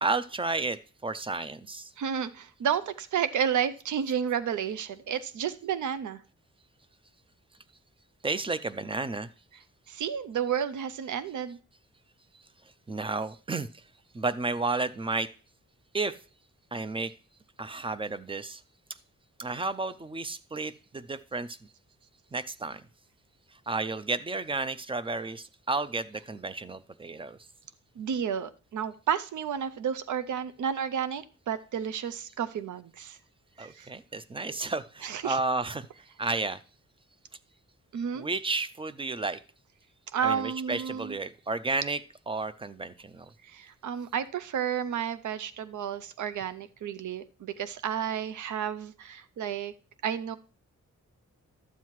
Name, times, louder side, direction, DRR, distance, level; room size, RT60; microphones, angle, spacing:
voice 1, 0.0-1.9 8.2-9.3 12.9-13.8 14.1-15.3 15.9-16.1 16.7-17.1 17.6-18.6 19.4-21.6 22.3-22.8 23.7-27.4 33.6-35.8 36.2-36.6 38.1-39.4 40.2-43.3, right 3 dB, 20° right, 14 dB, 0.3 m, -32 dB
voice 2, 2.0-6.2 9.9-11.6 28.0-33.2 33.6-33.9 35.0-35.4 37.9-38.3 40.1-41.2 43.4-49.7 50.0-50.4, right 8 dB, 80° right, 12 dB, 0.6 m, -31 dB
12.0 x 7.4 x 3.1 m, 0.38 s
wide cardioid pair, 160°, 30 cm